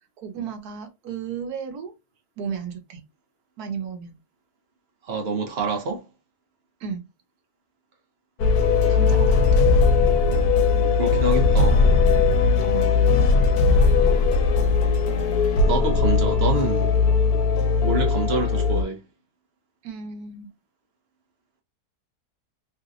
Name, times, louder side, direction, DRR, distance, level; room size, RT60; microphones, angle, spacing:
voice 1, 0.2-1.9 2.4-3.0 3.6-4.1 6.8-7.1 8.9-9.6 12.6-13.0 19.8-20.5, right 6 dB, 75° right, 1.3 m, -34 dB
voice 2, 5.0-6.0 9.0-9.1 10.9-11.8 15.6-16.9 17.8-19.0, right 3 dB, 50° right, 0.9 m, -27 dB
sound 1, 8.4-18.8, left 4 dB, 75° left, 1.2 m, -19 dB
3.3 x 2.9 x 2.5 m
omnidirectional pair, 1.7 m